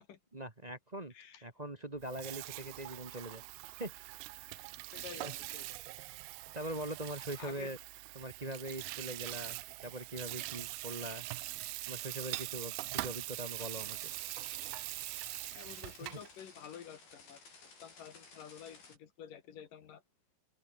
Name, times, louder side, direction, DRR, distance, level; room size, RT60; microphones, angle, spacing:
voice 1, 0.3-1.1 1.4-3.4 3.8-3.9 5.2-5.3 6.5-7.8 8.1-11.3 11.9-14.0 16.1-16.2, right 1 dB, 40° right, 0.5 m, -42 dB
voice 2, 1.1-1.5 4.9-5.7 7.4-7.7 15.5-17.4 17.8-20.0, left 8 dB, 65° left, 3.7 m, -50 dB
Water tap faucet / Sink (filling or washing), 2.0-16.3, right 21 dB, 90° right, 2.5 m, -43 dB
sound 1, 13.6-19.0, left 4 dB, 90° left, 9.7 m, -57 dB
omnidirectional pair, 4.2 m